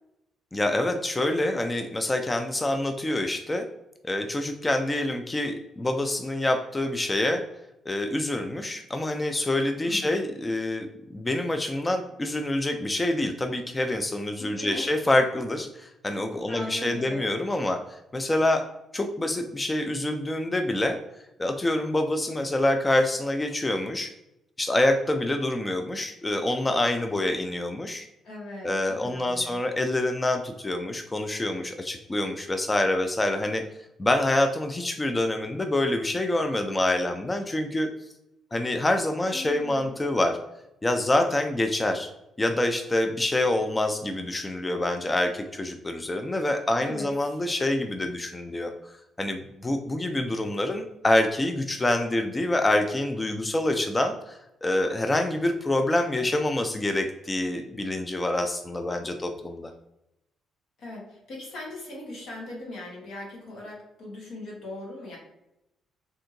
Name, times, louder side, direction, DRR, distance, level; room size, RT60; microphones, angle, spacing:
voice 1, 0.5-3.7 4.0-7.4 7.9-10.9 11.1-18.6 18.9-21.0 21.4-24.1 24.6-28.1 28.6-33.6 34.0-37.9 38.5-40.4 40.8-42.1 42.4-59.7, left 1 dB, 20° left, 5 dB, 0.3 m, -26 dB
voice 2, 9.8-10.3 14.4-14.8 16.5-17.5 28.2-29.6 39.2-40.0 46.8-47.1 60.8-65.2, left 2 dB, 75° left, -2 dB, 1.4 m, -40 dB
3.6 x 2.6 x 2.6 m, 0.87 s
cardioid pair, 90°, 0 cm